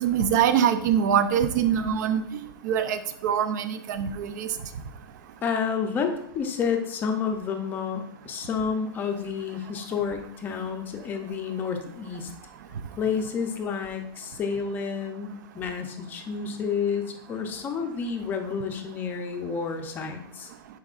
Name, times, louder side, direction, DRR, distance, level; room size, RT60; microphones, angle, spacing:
voice 1, 0.0-2.2 2.6-4.5, right 8 dB, 50° right, 10 dB, 0.6 m, -23 dB
voice 2, 5.4-12.3 13.0-20.5, left 6 dB, 15° left, 4 dB, 0.6 m, -30 dB
9.8 x 4.2 x 2.5 m, 0.72 s
supercardioid pair, 165°, 13 cm